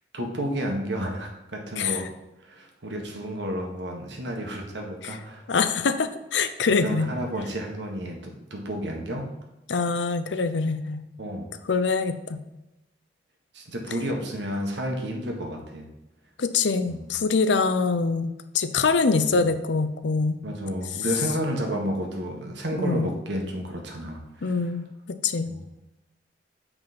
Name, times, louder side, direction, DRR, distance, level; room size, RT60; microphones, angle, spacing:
voice 1, 0.1-2.1 2.5-5.4 6.8-9.3 11.2-11.5 13.5-15.9 16.9-17.1 19.3-19.5 20.4-24.6 25.5-25.6, equal, 85° right, 1 dB, 1.6 m, -31 dB
voice 2, 5.5-7.1 9.7-11.0 11.7-12.4 16.4-20.4 22.8-23.1 24.4-24.9 25.2-25.5, left 4 dB, 90° left, 11 dB, 0.6 m, -24 dB
7.4 x 5.2 x 4.3 m, 0.97 s
head